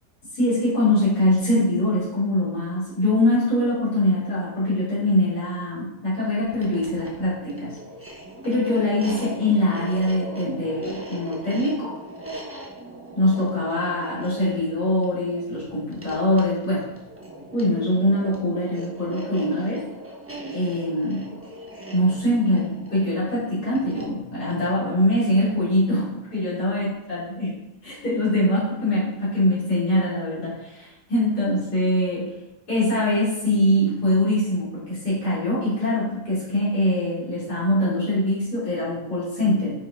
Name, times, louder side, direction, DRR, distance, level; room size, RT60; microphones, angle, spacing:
voice 1, 0.3-7.8 8.4-11.9 13.1-16.9 17.5-19.8 20.5-21.3 21.9-27.5 27.8-32.3 32.7-39.7, left 1 dB, 75° left, -10 dB, 3.9 m, -23 dB
sound 1, 6.5-25.7, right 1 dB, 10° right, 1.0 m, -39 dB
9.7 x 5.5 x 3.8 m, 0.93 s
omnidirectional pair, 1.7 m